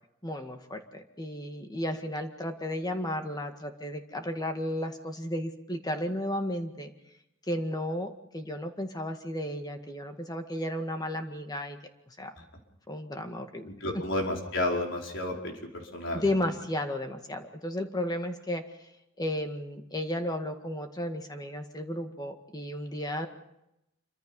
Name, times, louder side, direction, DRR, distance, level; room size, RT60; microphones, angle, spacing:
voice 1, 0.2-6.9 7.5-11.8 12.1-12.3 12.9-13.7 16.1-18.6 19.2-23.3, left 1 dB, 20° left, 5 dB, 1.9 m, -33 dB
voice 2, 13.6-16.5, left 1 dB, 65° left, 1 dB, 4.9 m, -32 dB
27.5 x 24.5 x 5.5 m, 0.85 s
head